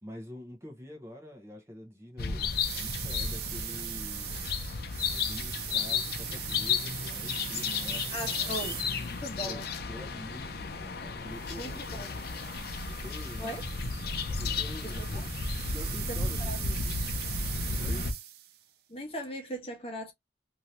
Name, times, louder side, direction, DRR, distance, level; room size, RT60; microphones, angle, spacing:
voice 1, 0.0-2.5 2.8-4.5 5.1-8.6 9.4-12.3 12.9-13.6 14.4-15.3 15.7-16.8 17.8-18.1, left 1 dB, 15° right, 0.8 m, -46 dB
sound 1, 2.2-18.1, left 5 dB, 60° left, 0.6 m, -33 dB
sound 2, 2.4-9.4 11.3-18.6, right 12 dB, 60° right, 0.4 m, -40 dB
voice 2, 8.1-8.8 9.1-9.7 11.6-12.1 13.4-13.6 14.8-15.2 16.1-16.6 18.9-20.1, equal, 35° left, 1.1 m, -39 dB
2.7 x 2.7 x 3.1 m
head